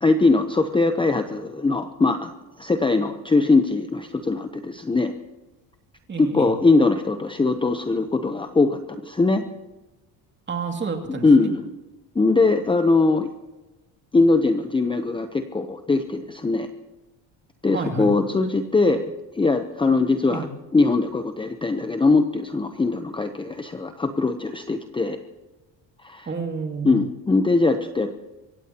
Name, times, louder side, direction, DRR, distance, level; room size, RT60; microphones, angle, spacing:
voice 1, 0.0-2.3 2.6-5.1 6.2-9.4 11.2-11.7 12.1-13.3 14.1-16.7 17.6-19.0 19.3-20.5 20.7-25.2 26.0-26.3 26.8-28.1, left 3 dB, 10° left, 8 dB, 0.8 m, -21 dB
voice 2, 6.1-6.5 10.5-11.5 17.7-18.1 20.3-20.5 26.3-27.0, right 4 dB, 25° right, 3 dB, 2.5 m, -29 dB
25.5 x 15.0 x 2.9 m, 1.1 s
cardioid pair, 125°, 43 cm